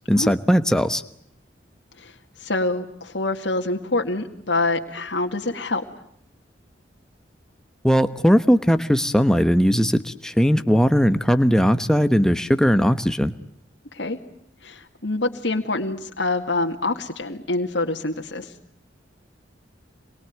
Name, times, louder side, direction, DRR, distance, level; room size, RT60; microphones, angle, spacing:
voice 1, 0.1-1.0 7.8-13.3, equal, 5° left, 9 dB, 1.1 m, -18 dB
voice 2, 2.4-5.8 13.9-14.2 14.6-18.5, left 2 dB, 70° left, 3 dB, 2.2 m, -26 dB
27.5 x 22.5 x 9.5 m, 0.71 s
head